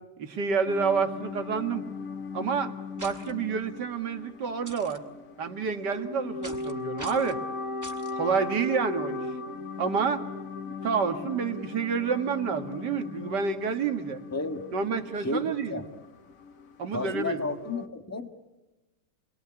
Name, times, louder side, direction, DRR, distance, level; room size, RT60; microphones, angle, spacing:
voice 1, 0.2-1.9 2.3-5.0 5.4-7.4 8.1-9.2 9.8-10.3 10.8-14.2 14.7-15.8 16.8-17.5, right 6 dB, 75° right, 7 dB, 2.4 m, -29 dB
sound 1, 0.6-17.9, left 4 dB, 55° left, 1.8 m, -38 dB
sound 2, 3.0-3.3 4.7-5.0 6.4-6.7 7.0-7.4 7.8-8.1, right 1 dB, 10° right, 2.6 m, -43 dB
voice 2, 14.3-14.6 15.2-15.8 16.9-18.3, left 3 dB, 10° left, 7 dB, 1.5 m, -32 dB
28.5 x 21.0 x 9.6 m, 1.1 s
omnidirectional pair, 1.8 m